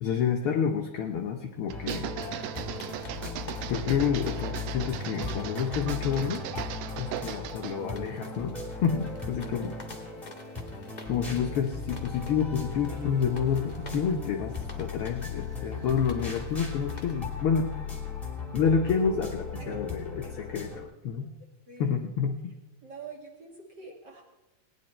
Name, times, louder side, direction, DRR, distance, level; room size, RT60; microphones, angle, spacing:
voice 1, 0.0-2.1 3.7-6.4 7.0-9.8 11.1-17.7 18.5-21.3 21.8-22.4, left 6 dB, 80° left, 3 dB, 1.2 m, -29 dB
sound 1, 1.7-20.8, left 4 dB, ahead, 2.1 m, -37 dB
sound 2, 1.7-7.8, right 11 dB, 85° right, 2.1 m, -38 dB
voice 2, 2.1-3.1 10.0-10.2 19.6-19.7 21.7-22.0 22.8-24.2, right 3 dB, 45° right, -1 dB, 1.6 m, -45 dB
sound 3, 2.3-17.2, left 2 dB, 35° left, 0.7 m, -51 dB
18.0 x 10.0 x 4.3 m, 1.1 s
omnidirectional pair, 3.5 m